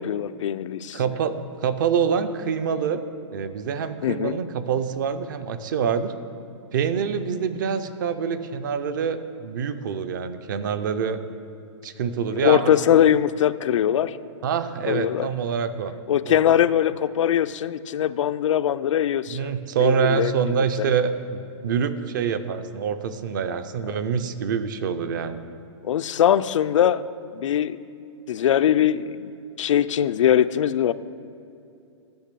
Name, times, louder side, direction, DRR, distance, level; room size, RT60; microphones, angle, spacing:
voice 1, 0.0-1.0 4.0-4.3 12.3-14.2 14.9-15.3 16.1-19.5 19.8-20.9 25.8-27.0 27.3-27.8 28.3-29.3 29.6-30.9, left 10 dB, 80° left, 13 dB, 0.4 m, -21 dB
voice 2, 0.9-3.0 3.3-6.1 6.7-11.2 11.8-12.7 14.4-15.9 16.2-16.4 19.3-25.5, right 7 dB, 40° right, 11 dB, 0.5 m, -26 dB
10.5 x 6.0 x 6.7 m, 2.7 s
hypercardioid pair, 175°, 16 cm